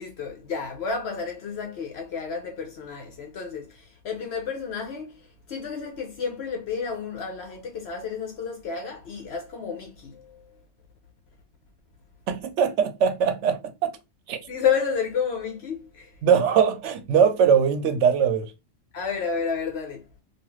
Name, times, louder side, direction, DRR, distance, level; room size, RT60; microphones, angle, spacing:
voice 1, 0.0-5.2 5.5-10.4 14.5-16.1 18.9-20.0, left 6 dB, 70° left, 0.8 m, -31 dB
voice 2, 12.3-13.9 14.3-14.4 16.2-18.5, right 7 dB, 90° right, 0.9 m, -21 dB
2.4 x 2.4 x 3.0 m
omnidirectional pair, 1.2 m